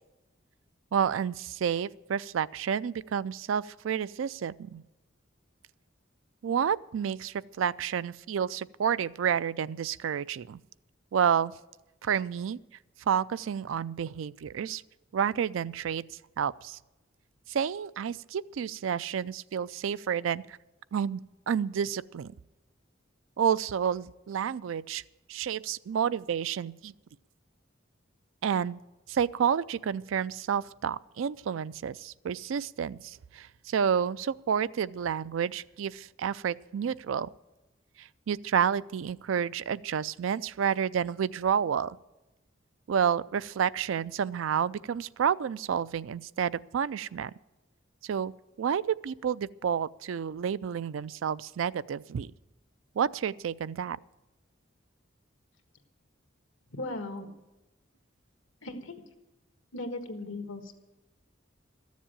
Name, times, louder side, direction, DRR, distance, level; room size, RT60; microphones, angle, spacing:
voice 1, 0.9-4.8 6.4-10.6 11.1-11.5 12.0-12.6 13.1-14.8 15.1-16.0 16.4-16.8 17.5-20.6 20.9-21.2 21.5-22.3 23.4-25.0 25.3-26.9 28.4-28.8 29.1-37.3 38.0-42.0 42.9-47.3 48.0-48.3 48.6-52.3 53.0-54.0, right 7 dB, 80° right, 18 dB, 0.4 m, -30 dB
voice 2, 56.7-57.3 58.6-59.0 59.7-60.7, left 2 dB, 85° left, 7 dB, 1.5 m, -37 dB
14.0 x 7.3 x 8.8 m, 1.0 s
head